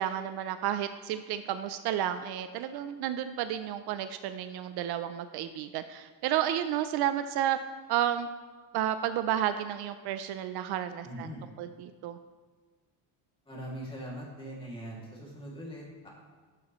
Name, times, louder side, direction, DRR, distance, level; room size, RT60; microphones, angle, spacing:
voice 1, 0.0-7.6 7.9-8.3 8.7-11.3 11.6-12.2, right 11 dB, 65° right, 10 dB, 0.5 m, -31 dB
voice 2, 11.0-11.5 13.4-16.1, equal, 10° left, -4 dB, 2.4 m, -41 dB
12.5 x 7.4 x 3.1 m, 1.5 s
cardioid pair, 150°, 43 cm